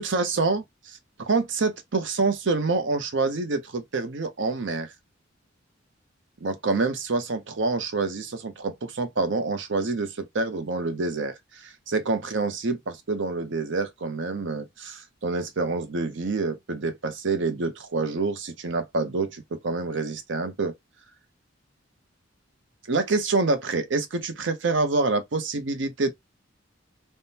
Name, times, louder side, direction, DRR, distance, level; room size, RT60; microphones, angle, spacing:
voice 1, 0.0-4.9 6.4-20.7 22.9-26.1, right 3 dB, 65° right, 0.7 m, -27 dB
3.5 x 2.1 x 2.7 m
head